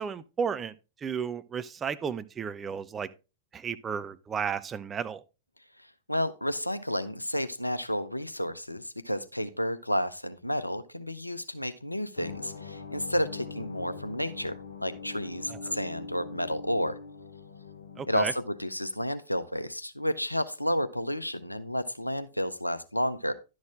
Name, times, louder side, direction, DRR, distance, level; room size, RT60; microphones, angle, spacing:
voice 1, 0.0-3.1 3.5-5.2 15.5-15.8 18.0-18.3, right 6 dB, 20° right, 0.6 m, -33 dB
voice 2, 6.1-17.0 18.1-23.3, equal, 90° left, 0.6 m, -31 dB
sound 1, 12.2-18.3, left 4 dB, 65° left, 1.0 m, -42 dB
11.0 x 6.4 x 3.6 m
figure-of-eight pair, 95°, 0 cm